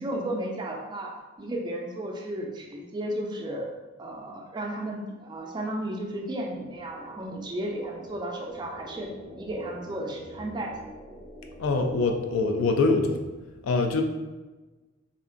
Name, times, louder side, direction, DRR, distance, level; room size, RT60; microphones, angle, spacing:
voice 1, 0.0-3.7 4.0-9.1 9.4-10.8, right 1 dB, 20° right, 1 dB, 0.3 m, -34 dB
sound 1, 4.3-13.0, right 1 dB, 35° left, 0.7 m, -47 dB
voice 2, 11.6-13.2 13.6-14.0, left 3 dB, 80° left, 4 dB, 0.4 m, -24 dB
2.8 x 2.4 x 2.4 m, 1.2 s
head